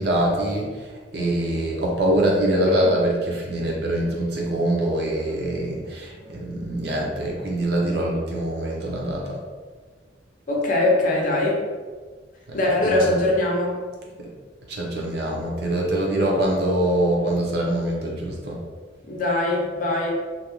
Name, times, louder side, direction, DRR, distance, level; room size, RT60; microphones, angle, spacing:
voice 1, 0.0-9.4 12.5-12.6 12.8-13.2 14.2-14.3 14.7-18.6, right 1 dB, 60° right, -2 dB, 0.6 m, -24 dB
voice 2, 2.5-2.9 10.5-11.6 12.5-13.8 19.0-20.1, left 2 dB, 45° left, -2 dB, 0.6 m, -22 dB
2.5 x 2.2 x 3.0 m, 1.5 s
head